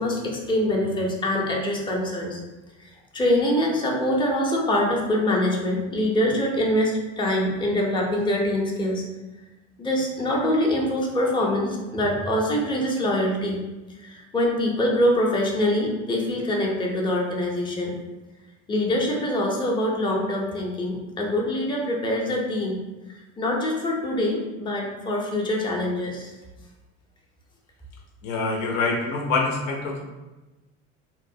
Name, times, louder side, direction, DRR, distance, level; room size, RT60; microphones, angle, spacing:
voice 1, 0.0-2.4 2.8-9.0 9.8-13.6 14.0-17.9 18.7-22.8 23.4-26.3, left 1 dB, 15° left, -2 dB, 0.6 m, -24 dB
voice 2, 28.2-30.0, left 3 dB, 75° left, 0 dB, 0.6 m, -25 dB
2.9 x 2.0 x 2.6 m, 1.1 s
hypercardioid pair, 70°, 36 cm